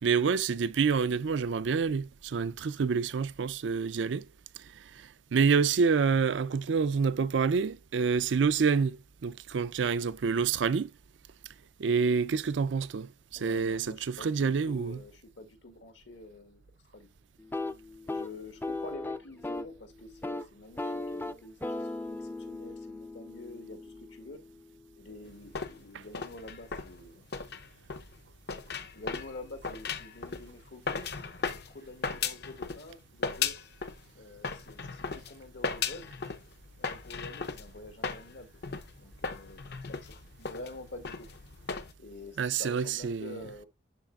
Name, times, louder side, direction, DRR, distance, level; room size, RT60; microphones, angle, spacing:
voice 1, 0.0-4.3 4.6-10.9 11.8-15.0 42.4-43.5, right 5 dB, 85° right, 0.5 m, -28 dB
voice 2, 13.3-17.1 18.1-24.4 24.9-27.3 28.9-31.1 31.4-33.6 34.1-36.1 36.8-38.6 39.0-41.3 42.0-43.7, left 2 dB, 85° left, 2.0 m, -47 dB
sound 1, 17.4-19.8 20.1-20.5 20.8-24.6, left 2 dB, 10° left, 0.4 m, -37 dB
sound 2, 25.3-32.9 33.2-34.0 34.4-41.9, left 5 dB, 60° left, 0.7 m, -37 dB
12.0 x 4.2 x 2.3 m
head